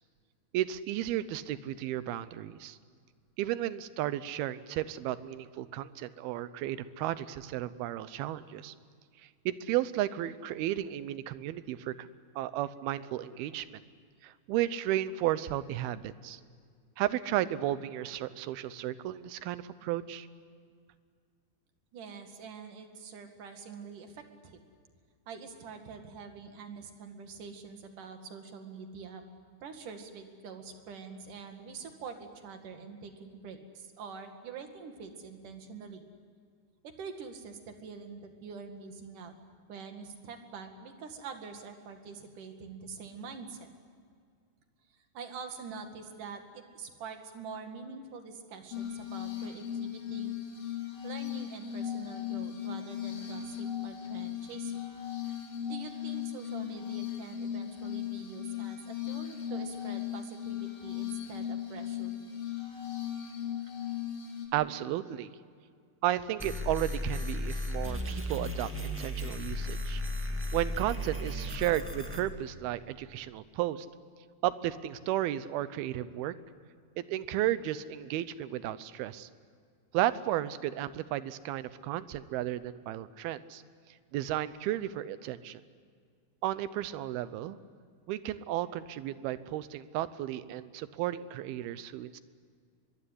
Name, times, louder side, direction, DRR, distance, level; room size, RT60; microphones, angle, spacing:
voice 1, 0.5-2.8 3.4-8.7 9.2-12.1 12.4-13.8 14.2-16.4 17.0-20.3 64.5-65.3 66.0-70.0 70.5-73.9 74.4-76.3 77.0-79.3 79.9-83.6 84.1-85.6 86.4-87.6 88.1-92.2, right 13 dB, 85° right, 15 dB, 2.8 m, -33 dB
voice 2, 21.9-24.6 25.3-29.2 29.6-36.1 36.8-39.3 39.7-43.7 44.9-50.3 51.0-54.8 55.7-62.2, right 5 dB, 60° right, 5 dB, 3.4 m, -45 dB
Glass, 48.7-64.5, left 10 dB, 70° left, 5.0 m, -37 dB
sound 1, 66.4-72.2, left 1 dB, 5° right, 0.9 m, -35 dB
24.0 x 22.0 x 9.9 m, 2.1 s
omnidirectional pair, 4.4 m